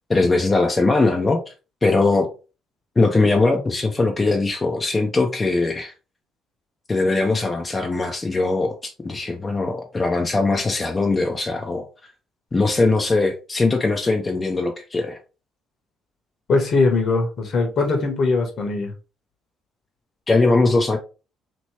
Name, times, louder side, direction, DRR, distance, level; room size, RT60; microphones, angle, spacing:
voice 1, 0.1-1.5 1.8-2.3 3.0-5.9 6.9-11.9 12.5-15.2 20.3-21.0, left 3 dB, 30° left, 2 dB, 0.6 m, -20 dB
voice 2, 16.5-18.9, left 3 dB, 60° left, 3 dB, 1.2 m, -20 dB
3.0 x 3.0 x 3.0 m, 0.32 s
hypercardioid pair, 55°, 0 cm